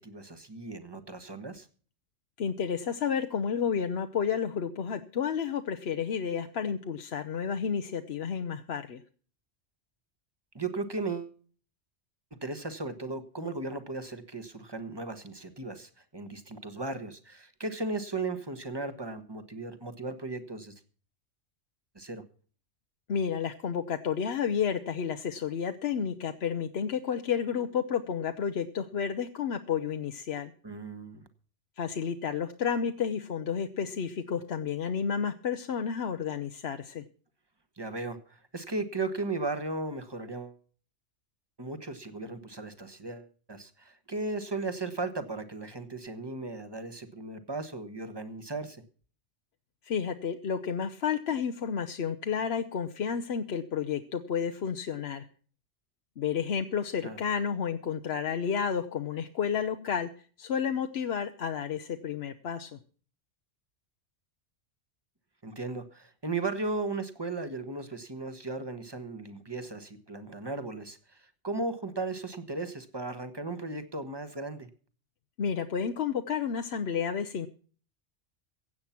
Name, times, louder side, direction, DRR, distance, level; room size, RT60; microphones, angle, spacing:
voice 1, 0.0-1.7 10.5-11.4 12.4-20.7 21.9-22.2 30.6-31.3 37.8-40.6 41.6-48.8 57.0-57.2 65.4-74.7, right 3 dB, 20° right, 10 dB, 1.4 m, -36 dB
voice 2, 2.4-9.0 23.1-30.5 31.8-37.0 49.8-55.3 56.2-60.1 60.4-62.8 75.4-77.5, left 7 dB, 65° left, 8 dB, 1.0 m, -31 dB
16.0 x 8.8 x 5.9 m, 0.42 s
omnidirectional pair, 1.2 m